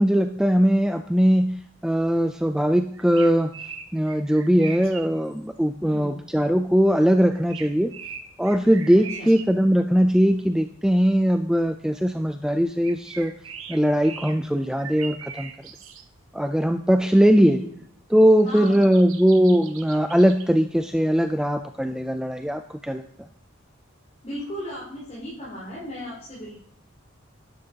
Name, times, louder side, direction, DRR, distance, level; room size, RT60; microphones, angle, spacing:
voice 1, 0.0-1.5 1.8-3.5 3.9-7.9 8.4-13.3 13.7-15.5 16.3-17.6 18.1-23.0, equal, 5° right, 7 dB, 0.3 m, -20 dB
sound 1, 2.9-5.0 5.3-5.4 7.3-9.5 12.8-14.4 14.8-16.0 16.4-16.5 18.3-20.5, right 6 dB, 80° right, 1.2 m, -40 dB
voice 2, 5.8-6.2 8.9-9.3 17.3-17.7 18.4-19.0 24.2-26.6, equal, 35° left, -7 dB, 4.5 m, -36 dB
11.5 x 11.0 x 2.8 m, 0.70 s
head